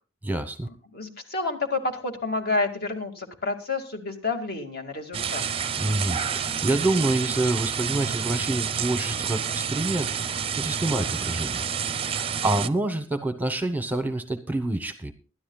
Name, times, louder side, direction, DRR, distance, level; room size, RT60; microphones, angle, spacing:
voice 1, 0.2-0.7 5.8-10.2 10.6-11.6 12.1-15.1, right 2 dB, 10° right, 10 dB, 0.9 m, -27 dB
voice 2, 0.9-5.4, left 3 dB, 50° left, 5 dB, 2.2 m, -29 dB
sound 1, 5.1-12.7, right 7 dB, 30° right, 0.5 m, -29 dB
21.0 x 12.5 x 2.3 m, 0.35 s
head